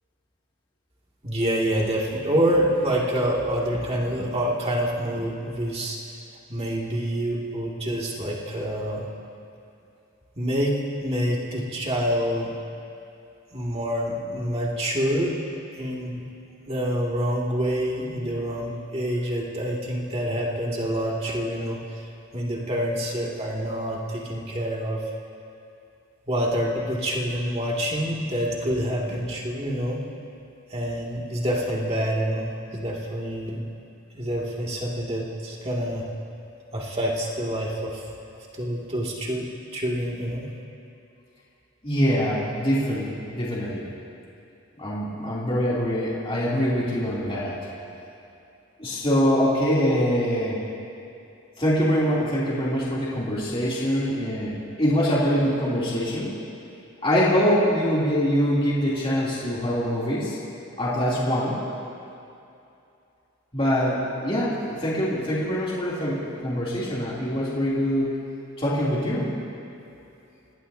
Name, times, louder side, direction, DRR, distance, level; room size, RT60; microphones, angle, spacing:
voice 1, 1.2-6.0 6.5-9.1 10.4-12.5 13.5-15.4 15.7-16.3 16.7-25.0 26.3-30.0 30.7-33.6 34.1-36.0 36.7-38.1 38.5-40.5, equal, 30° right, -3 dB, 2.4 m, -27 dB
voice 2, 41.8-43.9 44.8-47.6 48.8-50.6 51.6-56.3 57.0-60.4 60.8-61.5 63.5-68.1 68.6-69.3, equal, 25° left, -8 dB, 3.0 m, -24 dB
26.5 x 19.5 x 2.8 m, 2.7 s
head